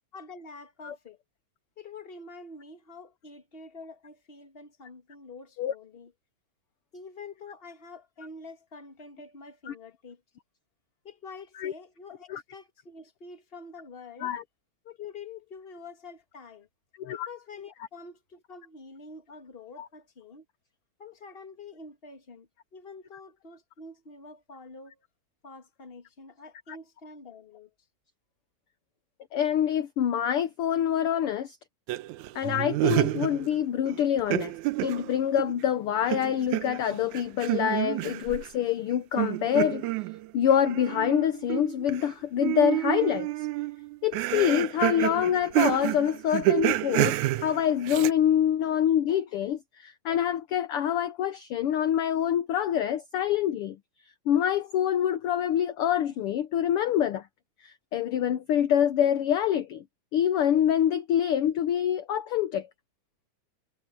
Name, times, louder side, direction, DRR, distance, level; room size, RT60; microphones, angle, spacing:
voice 1, 0.1-1.2 1.8-6.1 6.9-10.2 11.0-14.4 14.8-16.7 17.1-20.4 21.0-25.0 25.4-27.7, left 4 dB, 20° left, 1.9 m, -46 dB
voice 2, 29.3-31.6 32.3-34.5 34.8-39.9 40.3-43.3 44.0-53.8 54.3-57.3 57.6-59.8 60.1-62.7, left 10 dB, 65° left, 1.4 m, -26 dB
sound 1, 31.9-33.6 33.9-35.7 36.1-38.5 39.2-42.1 42.4-48.1, right 17 dB, 90° right, 2.1 m, -29 dB
omnidirectional pair, 3.4 m